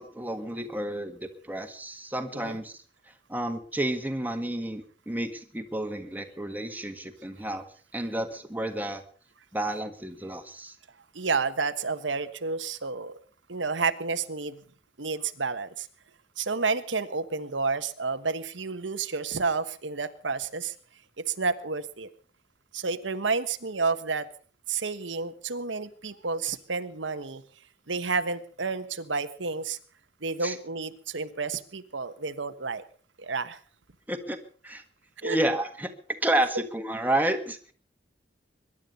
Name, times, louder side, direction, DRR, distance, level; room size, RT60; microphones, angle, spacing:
voice 1, 0.0-2.7 3.3-7.7 7.9-9.0 9.5-10.8 30.4-30.5 34.1-34.4 34.6-34.8 35.2-35.9 36.2-37.7, right 1 dB, 10° right, 6 dB, 1.6 m, -30 dB
voice 2, 11.1-13.2 13.5-14.6 15.0-15.9 16.4-20.7 21.2-22.1 22.7-24.3 24.7-27.4 27.9-29.8 30.2-32.8 33.2-33.6 35.2-35.4, right 4 dB, 90° right, 10 dB, 1.3 m, -30 dB
22.5 x 11.0 x 5.4 m, 0.43 s
head